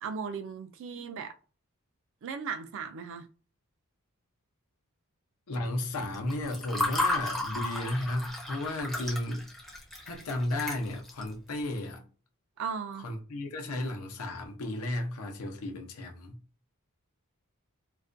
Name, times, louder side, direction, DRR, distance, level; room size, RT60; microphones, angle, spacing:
voice 1, 0.0-1.3 2.2-3.3 12.6-13.1, right 6 dB, 60° right, 0.3 m, -37 dB
voice 2, 5.5-9.5 10.0-12.0 12.9-16.4, left 1 dB, 85° left, 0.6 m, -34 dB
Water / Fill (with liquid), 6.1-11.3, left 1 dB, ahead, 0.5 m, -33 dB
2.4 x 2.2 x 2.5 m
head